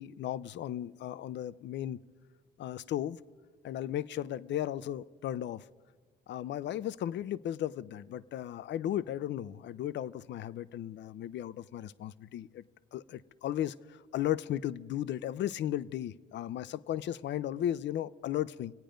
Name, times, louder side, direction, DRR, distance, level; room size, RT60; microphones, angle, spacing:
voice 1, 0.0-2.0 2.6-3.2 3.6-5.6 6.3-12.6 12.9-18.7, left 11 dB, 65° left, 0.5 m, -35 dB
26.0 x 9.0 x 5.1 m
cardioid pair, 90°, 20 cm